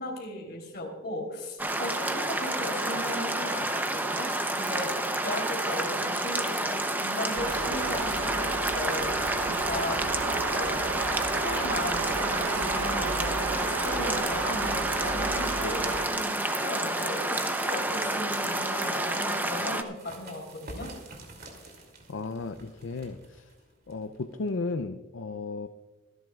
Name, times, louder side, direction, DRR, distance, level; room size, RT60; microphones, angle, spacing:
voice 1, 0.0-4.3 4.6-4.9 5.2-9.1 9.4-10.0 10.5-11.0 11.3-20.9, left 1 dB, 50° left, 1 dB, 3.3 m, -36 dB
sound 1, 1.6-19.8, right 1 dB, 10° right, 0.6 m, -29 dB
sound 2, 7.4-16.1, right 4 dB, 80° right, 0.9 m, -33 dB
sound 3, 19.4-24.8, right 1 dB, 45° right, 2.7 m, -48 dB
voice 2, 22.1-23.5 23.9-25.7, left 3 dB, 65° left, 9 dB, 0.5 m, -34 dB
25.0 x 11.0 x 2.4 m, 1.3 s
head